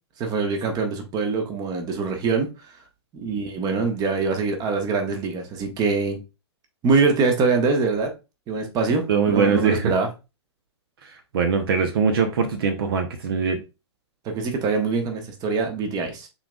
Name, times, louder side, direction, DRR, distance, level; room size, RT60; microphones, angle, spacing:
voice 1, 0.2-2.5 3.1-6.2 6.8-8.1 8.5-10.1 14.2-16.3, right 4 dB, 25° right, 1.2 m, -24 dB
voice 2, 9.1-9.9 11.0-13.6, right 5 dB, 55° right, 0.9 m, -22 dB
5.7 x 4.0 x 2.3 m
figure-of-eight pair, 110°, 14 cm